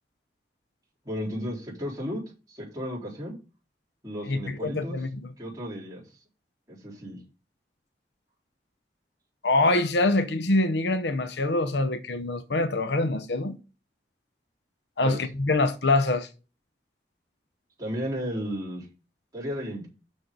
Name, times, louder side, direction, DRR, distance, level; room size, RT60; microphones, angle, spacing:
voice 1, 1.0-3.4 4.0-5.0 5.4-6.0 6.7-7.2 15.0-15.2 17.8-18.9 19.3-19.9, equal, 20° right, 4.0 m, -34 dB
voice 2, 4.3-5.3 9.4-13.6 15.0-16.3, left 2 dB, 75° left, 0.8 m, -25 dB
6.4 x 6.3 x 5.2 m
head